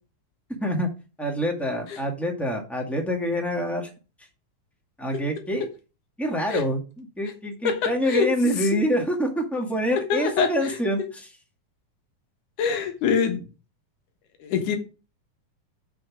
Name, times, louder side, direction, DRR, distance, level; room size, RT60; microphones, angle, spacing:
voice 1, 0.5-0.9 1.2-3.9 5.0-5.7 6.2-11.3, equal, ahead, 2 dB, 1.3 m, -26 dB
voice 2, 7.6-8.6 10.1-10.8 12.6-13.5 14.4-14.8, left 6 dB, 85° left, 6 dB, 2.9 m, -25 dB
6.3 x 6.3 x 6.1 m, 0.33 s
omnidirectional pair, 3.5 m